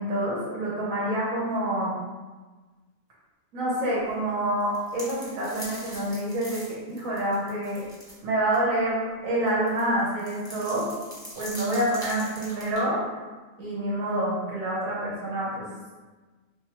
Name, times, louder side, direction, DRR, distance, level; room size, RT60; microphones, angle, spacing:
voice 1, 0.0-2.0 3.5-7.8 8.2-10.9 11.3-13.0 13.6-15.7, right 1 dB, 90° right, -6 dB, 1.4 m, -27 dB
sound 1, 4.6-8.2 8.5-8.6 9.5-12.8, equal, 5° left, 0.8 m, -42 dB
3.2 x 3.0 x 3.0 m, 1.3 s
omnidirectional pair, 1.4 m